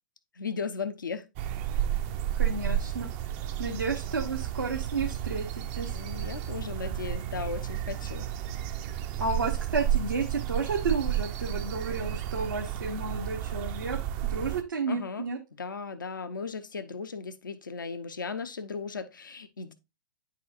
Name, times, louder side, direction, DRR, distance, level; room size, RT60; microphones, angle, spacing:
voice 1, 0.3-1.3 5.9-8.3 14.9-15.3 15.6-19.7, left 5 dB, 80° left, 0.6 m, -36 dB
sound 1, 1.4-14.6, right 11 dB, 40° right, 0.5 m, -32 dB
voice 2, 2.4-3.1 3.6-5.9 9.2-14.0 14.3-15.4, right 4 dB, 80° right, 1.1 m, -32 dB
9.9 x 4.1 x 2.5 m
figure-of-eight pair, 105°, 11 cm